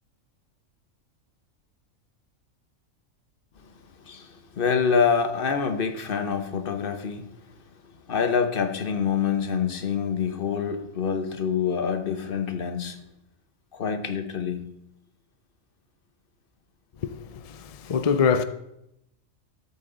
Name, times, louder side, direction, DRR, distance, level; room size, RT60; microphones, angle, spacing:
voice 1, 4.0-7.4 8.1-13.0 13.7-14.7, left 6 dB, 45° left, 1.0 m, -26 dB
voice 2, 17.0-18.4, left 6 dB, 65° left, 0.3 m, -24 dB
13.0 x 8.3 x 3.9 m
omnidirectional pair, 1.4 m